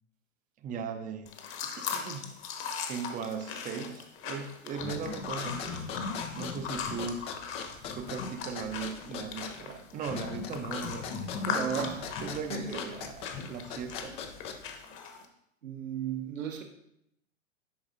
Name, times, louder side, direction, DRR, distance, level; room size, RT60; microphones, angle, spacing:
voice 1, 0.6-1.3 1.6-2.3 2.8-5.8 6.3-7.3 7.9-11.6 12.2-14.2, right 6 dB, 20° right, 8 dB, 0.6 m, -38 dB
sound 1, 1.3-15.3, left 6 dB, 35° left, 1.1 m, -40 dB
sound 2, 4.8-14.8, left 5 dB, 15° left, 0.3 m, -40 dB
voice 2, 11.5-12.1 12.5-13.0 15.6-16.6, right 7 dB, 80° right, 5 dB, 1.2 m, -35 dB
10.0 x 4.8 x 2.6 m, 0.77 s
figure-of-eight pair, 100°, 39 cm